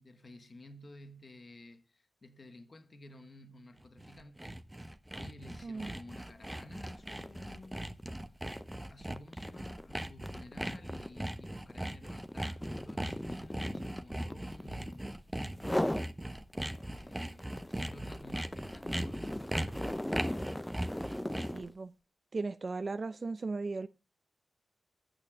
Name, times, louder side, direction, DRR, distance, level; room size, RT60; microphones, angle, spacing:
voice 1, 0.0-4.6 5.1-8.0 8.9-15.3 16.9-20.1, left 1 dB, 45° left, 1.3 m, -53 dB
Sawing, 3.8-21.7, right 1 dB, 10° right, 1.0 m, -39 dB
voice 2, 5.6-5.9 21.5-21.9 22.3-23.9, right 3 dB, 50° right, 0.6 m, -36 dB
sound 1, 6.1-6.3 6.6-15.1 15.5-16.1 16.6-21.7, left 1 dB, 10° left, 0.6 m, -39 dB
9.0 x 6.5 x 7.2 m
cardioid pair, 60°, 0 cm